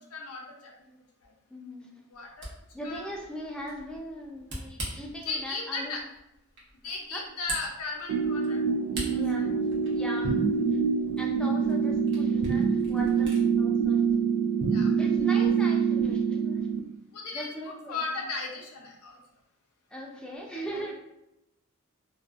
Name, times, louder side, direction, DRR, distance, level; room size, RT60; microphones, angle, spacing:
voice 1, 0.1-0.9 1.2-1.3 2.1-2.5 2.8-3.1 5.3-6.0 6.8-8.6 9.0-9.2 14.7-14.9 15.2-15.5 17.1-19.2 20.5-20.9, left 3 dB, 90° left, 1 dB, 0.6 m, -36 dB
voice 2, 1.5-1.9 2.7-6.0 7.1-7.2 9.1-9.5 9.9-10.3 10.7-10.8 11.2-14.0 14.8-16.7 17.3-18.0 19.9-20.9, equal, 5° left, -2 dB, 0.4 m, -39 dB
Camera, 2.1-13.5, right 2 dB, 55° right, 0.8 m, -44 dB
sound 1, 8.1-16.8, right 6 dB, 85° right, 0.3 m, -25 dB
2.5 x 2.3 x 2.4 m, 0.86 s
head